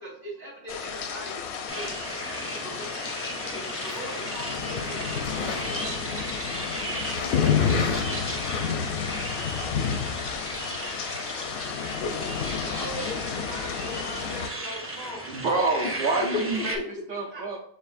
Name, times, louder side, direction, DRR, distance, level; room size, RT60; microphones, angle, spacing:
voice 1, 0.0-5.7 6.8-7.4 12.5-15.3 17.3-17.4, equal, 75° right, -11 dB, 2.2 m, -41 dB
sound 1, 0.7-14.5, left 6 dB, 85° left, 0.9 m, -30 dB
sound 2, 1.7-16.8, right 1 dB, 15° right, 0.6 m, -36 dB
voice 2, 5.2-5.7 6.6-9.1 16.3-16.4 16.8-16.9, left 5 dB, 55° left, 5 dB, 0.5 m, -35 dB
voice 3, 15.3-17.6, right 3 dB, 55° right, -2 dB, 0.8 m, -27 dB
7.7 x 2.6 x 2.5 m, 0.64 s
omnidirectional pair, 1.1 m